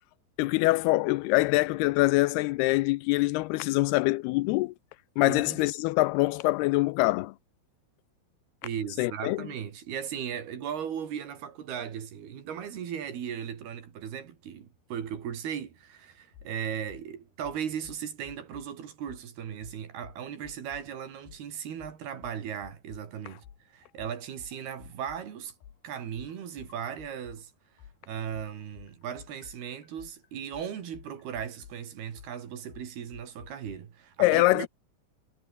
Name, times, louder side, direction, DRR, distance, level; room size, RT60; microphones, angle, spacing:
voice 1, 0.4-4.7 5.2-7.3 9.0-9.4 34.2-34.7, left 21 dB, 90° left, 2.2 m, -24 dB
voice 2, 5.3-5.6 8.6-25.5 25.8-27.5 28.0-34.7, right 8 dB, 60° right, 4.5 m, -37 dB
sound 1, 16.3-16.5 16.9-17.1 17.4-18.7 19.1-19.2 19.6-20.9 21.2-21.4 21.8-23.1 23.4-27.4 27.8-33.8, left 9 dB, 60° left, 4.0 m, -51 dB
omnidirectional pair, 5.2 m